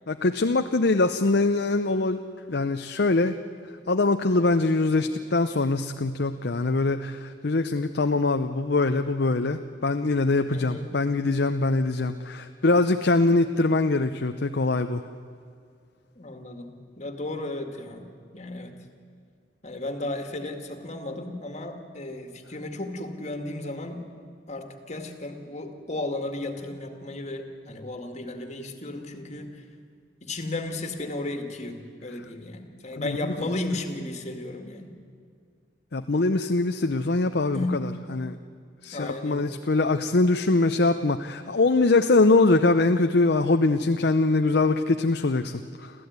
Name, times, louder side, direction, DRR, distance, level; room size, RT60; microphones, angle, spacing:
voice 1, 0.1-2.2 2.5-3.4 3.9-15.0 33.0-33.5 35.9-38.4 38.8-45.9, left 3 dB, 60° left, 7 dB, 0.7 m, -23 dB
voice 2, 10.5-10.9 16.2-18.1 18.3-18.7 19.6-24.0 24.5-29.6 30.2-34.9 37.5-37.8 38.9-39.5, left 2 dB, 40° left, 6 dB, 2.1 m, -34 dB
26.0 x 15.0 x 9.5 m, 2.2 s
head